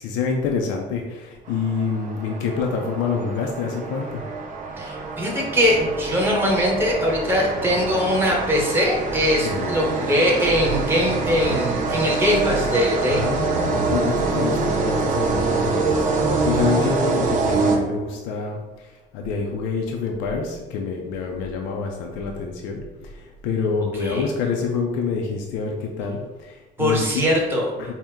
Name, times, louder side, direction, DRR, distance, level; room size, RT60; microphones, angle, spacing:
voice 1, 0.0-4.2 9.4-9.8 13.1-27.2 27.8-27.9, left 5 dB, 80° left, 1 dB, 0.5 m, -27 dB
sound 1, 1.5-18.3, right 3 dB, 40° right, 0.6 m, -25 dB
voice 2, 4.8-13.2 24.0-24.3 26.8-27.7, equal, 10° right, -2 dB, 1.0 m, -21 dB
4.4 x 2.1 x 3.5 m, 1.2 s
cardioid pair, 130°, 19 cm